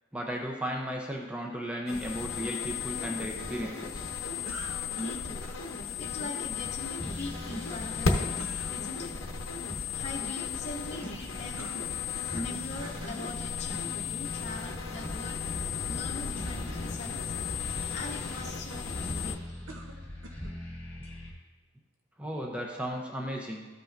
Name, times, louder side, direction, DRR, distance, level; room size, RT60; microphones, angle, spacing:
voice 1, 0.1-4.1 15.0-15.1 22.2-23.7, equal, 5° right, 0 dB, 0.6 m, -35 dB
sound 1, 1.9-19.3, left 5 dB, 75° left, 0.8 m, -35 dB
sound 2, 4.4-5.6 8.4-8.8 11.6-12.5 12.8-13.2 14.0-14.1 19.7-20.6, right 2 dB, 80° right, 0.8 m, -46 dB
voice 2, 5.0-5.4 6.0-8.4 8.7-9.2 9.9-11.7 12.3-15.4 15.9-17.2 17.9-19.4, left 2 dB, 30° left, -2 dB, 0.7 m, -41 dB
sound 3, 6.9-21.3, left 1 dB, 10° left, 1.6 m, -43 dB
13.0 x 5.5 x 2.5 m, 1.2 s
head